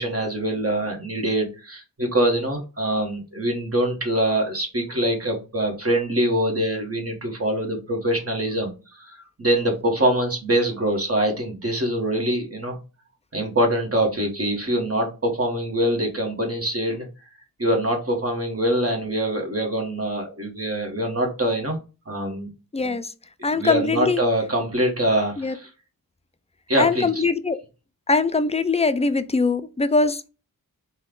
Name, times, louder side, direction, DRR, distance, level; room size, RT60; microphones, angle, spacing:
voice 1, 0.0-12.8 13.3-17.1 17.6-21.8 22.1-22.5 22.8-22.9 23.5-25.7 26.7-27.2, right 1 dB, 40° right, 1.4 m, -24 dB
voice 2, 22.7-23.1 23.4-24.2 25.4-25.5 26.8-27.6 28.1-30.3, left 3 dB, 20° left, 0.4 m, -22 dB
4.3 x 2.3 x 3.7 m
wide cardioid pair, 60°, 36 cm